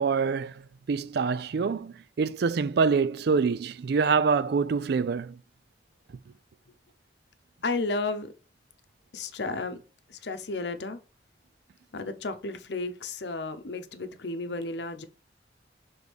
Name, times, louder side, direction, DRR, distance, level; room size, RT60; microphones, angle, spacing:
voice 1, 0.0-5.4, right 5 dB, 65° right, 0.4 m, -26 dB
voice 2, 7.6-8.3 9.1-9.8 10.1-11.0 11.9-15.0, left 3 dB, 75° left, 0.8 m, -33 dB
6.3 x 3.5 x 5.1 m
head